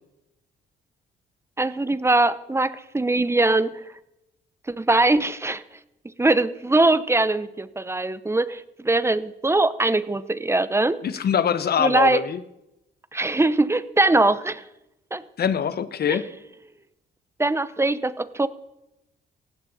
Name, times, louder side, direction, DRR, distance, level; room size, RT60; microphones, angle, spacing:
voice 1, 1.6-3.8 4.8-5.6 6.2-11.0 11.8-12.2 13.1-14.6 15.1-15.2 16.1-16.2 17.4-18.5, right 2 dB, 15° right, 15 dB, 0.8 m, -21 dB
voice 2, 11.0-12.4 15.4-16.3, left 8 dB, 50° left, 14 dB, 1.0 m, -23 dB
18.5 x 16.0 x 4.2 m, 0.89 s
cardioid pair, 90°, 20 cm